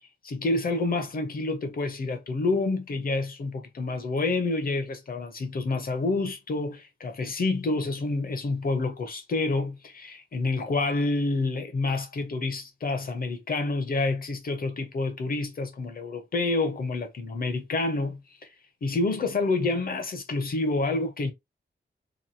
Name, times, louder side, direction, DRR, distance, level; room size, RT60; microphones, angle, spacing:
voice 1, 0.2-18.2 18.8-21.3, left 3 dB, 55° left, 0.8 m, -28 dB
3.0 x 2.3 x 2.7 m
wide cardioid pair, 155°, 18 cm